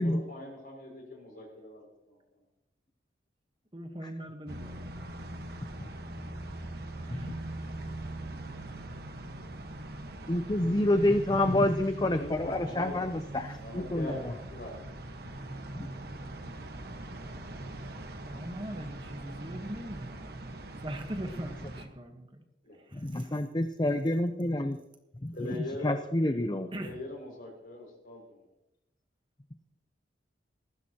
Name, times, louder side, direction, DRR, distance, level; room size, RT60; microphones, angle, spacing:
voice 1, 0.0-2.2 12.2-13.1 13.6-15.4 22.6-22.8 25.3-26.0 26.7-28.4, left 1 dB, 50° left, -1 dB, 5.8 m, -42 dB
voice 2, 3.7-4.9 7.1-7.4 18.3-20.3 20.8-22.4 22.8-23.4 26.7-27.0, right 1 dB, 25° right, 5 dB, 1.2 m, -41 dB
sound 1, 4.5-21.9, right 1 dB, 55° right, 1.2 m, -41 dB
voice 3, 10.3-14.3 15.8-15.9 22.9-24.8 25.2-26.7, left 1 dB, 20° left, 8 dB, 0.5 m, -28 dB
19.0 x 15.5 x 2.9 m, 0.88 s
head